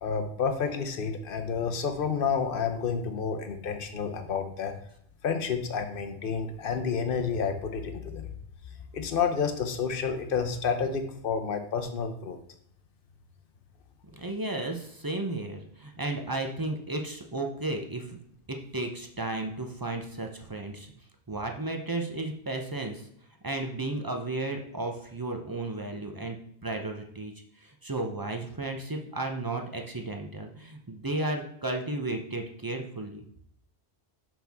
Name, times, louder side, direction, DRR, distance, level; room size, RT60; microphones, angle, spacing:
voice 1, 0.0-4.7 5.2-8.3 8.9-12.4, left 6 dB, 55° left, 7 dB, 0.9 m, -30 dB
voice 2, 14.1-18.2 18.5-20.9 21.3-23.1 23.4-26.4 26.6-33.2, right 2 dB, 25° right, 3 dB, 0.6 m, -34 dB
6.1 x 6.1 x 3.5 m, 0.71 s
omnidirectional pair, 1.1 m